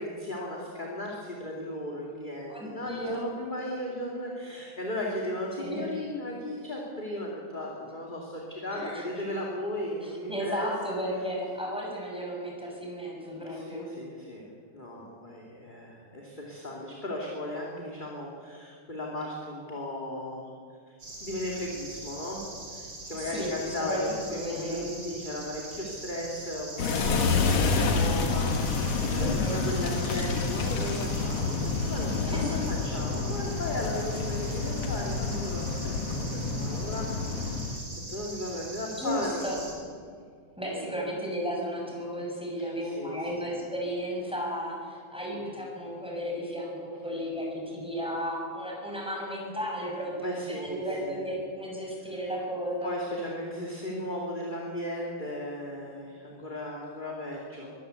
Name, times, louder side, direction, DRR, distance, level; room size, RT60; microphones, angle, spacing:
voice 1, 0.0-10.7 13.4-14.5 14.7-20.5 20.9-22.4 22.7-37.8 38.1-39.6 40.7-41.0 42.8-43.5 45.3-45.5 50.2-51.2 52.1-52.3 52.8-57.7, left 1 dB, 15° left, -2 dB, 2.4 m, -36 dB
voice 2, 2.5-3.2 5.6-5.8 8.7-9.0 10.0-13.9 23.1-23.5 23.8-24.8 29.2-29.6 32.3-32.6 39.0-39.6 40.6-52.9, equal, ahead, -3 dB, 6.1 m, -34 dB
sound 1, 21.0-39.7, right 2 dB, 35° right, 5.3 m, -42 dB
sound 2, 26.8-37.8, left 4 dB, 55° left, 2.4 m, -28 dB
23.0 x 15.0 x 8.3 m, 2.1 s
omnidirectional pair, 3.6 m